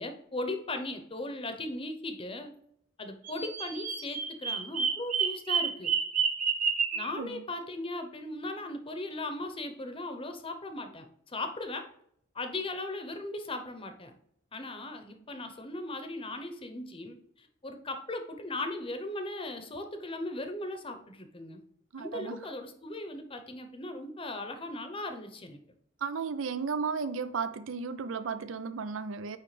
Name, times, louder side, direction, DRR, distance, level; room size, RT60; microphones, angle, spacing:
voice 1, 0.0-2.5 3.0-5.9 7.0-11.9 12.3-14.2 14.5-21.6 22.0-25.6, left 2 dB, 30° left, 0.8 m, -38 dB
Bird vocalization bird call bird song, 3.2-7.1, right 6 dB, 40° right, 0.9 m, -29 dB
voice 2, 6.9-7.4 21.9-22.5 26.0-29.4, right 5 dB, 75° right, 0.5 m, -34 dB
9.4 x 3.2 x 3.3 m
head